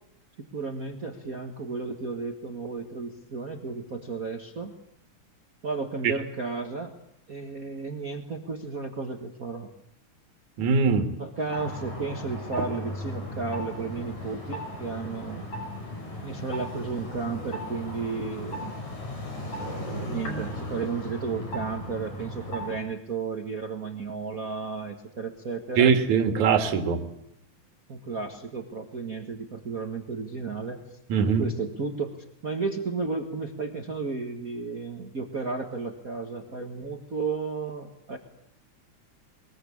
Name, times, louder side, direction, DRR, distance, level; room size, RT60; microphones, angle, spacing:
voice 1, 0.5-4.7 5.6-6.9 7.3-9.7 11.2-15.5 16.2-18.7 19.6-25.9 27.9-30.8 31.3-38.2, right 4 dB, 35° right, 4 dB, 1.6 m, -33 dB
voice 2, 10.6-11.1 25.8-27.0 31.1-31.5, right 6 dB, 75° right, 7 dB, 3.2 m, -21 dB
sound 1, 11.4-22.8, equal, 75° left, 7.1 m, -36 dB
22.5 x 21.5 x 8.5 m, 0.75 s
omnidirectional pair, 3.4 m